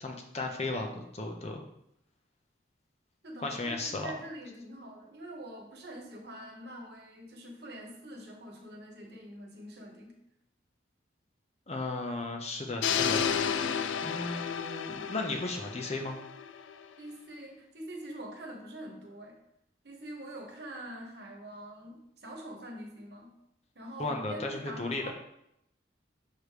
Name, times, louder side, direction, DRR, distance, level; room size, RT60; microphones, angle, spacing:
voice 1, 0.0-1.6 3.4-4.1 11.7-13.3 14.0-16.2 24.0-25.1, left 2 dB, 35° left, 2 dB, 0.7 m, -35 dB
voice 2, 3.2-10.2 17.0-19.4 19.8-23.3 23.7-25.1, right 1 dB, 60° right, 1 dB, 1.2 m, -44 dB
sound 1, 12.8-16.8, left 7 dB, 85° left, 0.3 m, -32 dB
6.6 x 3.1 x 4.9 m, 0.77 s
head